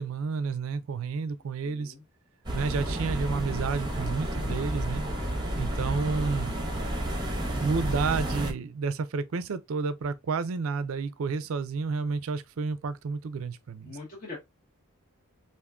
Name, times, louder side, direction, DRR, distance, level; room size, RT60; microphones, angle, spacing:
voice 1, 0.0-1.9 2.5-5.0 5.6-6.5 7.6-14.0, right 4 dB, 70° right, 0.4 m, -30 dB
voice 2, 1.6-2.0 13.9-14.4, left 3 dB, 35° left, 0.8 m, -42 dB
sound 1, 2.4-8.5, right 1 dB, 20° right, 0.7 m, -31 dB
3.6 x 2.5 x 2.3 m
head